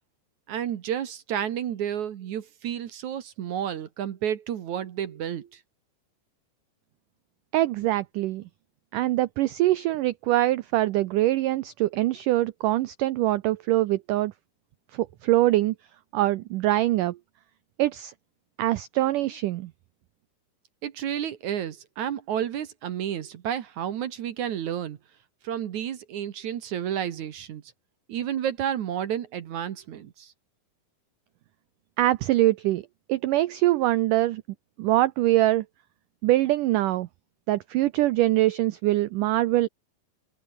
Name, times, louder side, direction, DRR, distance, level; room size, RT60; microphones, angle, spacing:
voice 1, 0.5-5.6 20.8-25.0 25.4-27.6 28.1-30.3, right 9 dB, 60° right, 2.3 m, -31 dB
voice 2, 7.5-8.4 8.9-14.3 15.2-15.7 16.1-17.2 17.8-18.1 18.6-19.7 32.0-32.8 33.1-34.4 34.8-35.6 36.2-37.1 37.5-39.7, right 16 dB, 90° right, 1.8 m, -23 dB
omnidirectional pair, 4.7 m